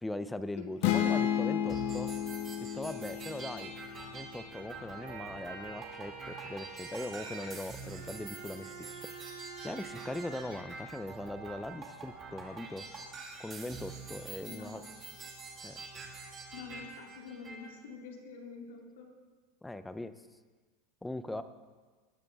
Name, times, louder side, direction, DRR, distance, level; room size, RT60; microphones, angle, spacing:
voice 1, 0.0-2.1 2.6-3.7 4.1-8.7 9.6-12.8 13.4-14.8 15.6-15.8 19.6-20.1 21.0-21.4, left 1 dB, 5° left, 11 dB, 0.5 m, -40 dB
sound 1, 0.8-4.6, left 9 dB, 60° left, 0.9 m, -32 dB
sound 2, 1.7-17.7, right 4 dB, 20° right, 2.1 m, -46 dB
sound 3, 4.8-10.4, right 5 dB, 65° right, 2.7 m, -47 dB
voice 2, 14.5-14.9 16.5-19.1, left 5 dB, 85° left, 1 dB, 2.5 m, -46 dB
19.5 x 10.0 x 3.5 m, 1.4 s
supercardioid pair, 155°, 0 cm